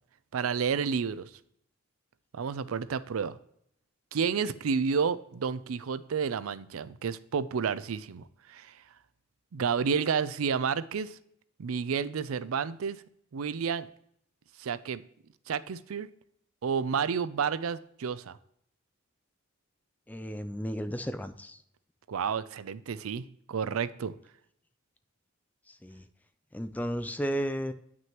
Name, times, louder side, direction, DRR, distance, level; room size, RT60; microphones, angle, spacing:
voice 1, 0.3-1.3 2.3-3.4 4.1-8.7 9.5-11.2 11.6-13.0 13.3-13.9 14.6-15.0 15.5-16.1 16.6-18.4 22.1-24.1, right 6 dB, 90° right, 16 dB, 0.4 m, -30 dB
voice 2, 20.1-21.6 25.7-26.0 26.5-27.7, equal, 10° left, 10 dB, 0.4 m, -33 dB
9.4 x 6.0 x 2.9 m, 0.72 s
head